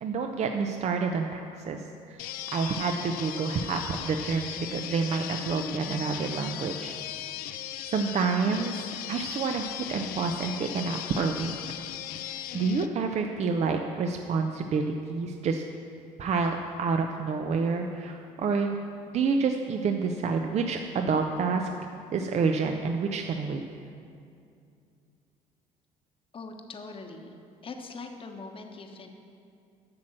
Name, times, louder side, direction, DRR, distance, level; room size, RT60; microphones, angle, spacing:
voice 1, 0.0-6.9 7.8-8.7 9.1-11.6 12.1-15.6 16.2-18.8 19.1-21.7 22.1-23.6, right 4 dB, 45° right, 4 dB, 0.6 m, -28 dB
sound 1, 2.2-12.9, left 12 dB, 70° left, 0.5 m, -38 dB
voice 2, 26.3-27.4 27.6-29.1, left 3 dB, 35° left, 4 dB, 1.1 m, -42 dB
8.7 x 6.2 x 7.5 m, 2.5 s
supercardioid pair, 75°, 15 cm